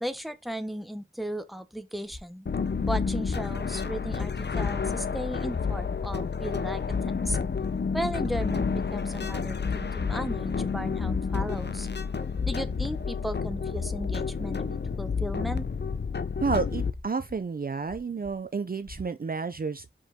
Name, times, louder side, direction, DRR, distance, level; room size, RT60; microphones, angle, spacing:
voice 1, 0.0-2.5 2.9-7.4 7.9-11.9 12.4-15.7, right 1 dB, ahead, 1.0 m, -35 dB
sound 1, 2.0-2.5 3.0-3.5 4.0-4.5 4.8-5.5 5.8-8.5 9.0-9.7 9.9-13.6 13.8-14.4 14.8-15.4 15.8-16.4 16.9-17.4 17.8-18.4 18.8-19.0, left 2 dB, 35° left, 1.2 m, -48 dB
sound 2, 2.5-16.9, left 5 dB, 55° left, 0.6 m, -30 dB
voice 2, 16.4-19.9, right 5 dB, 45° right, 0.5 m, -30 dB
5.4 x 5.0 x 3.6 m
wide cardioid pair, 50°, 21 cm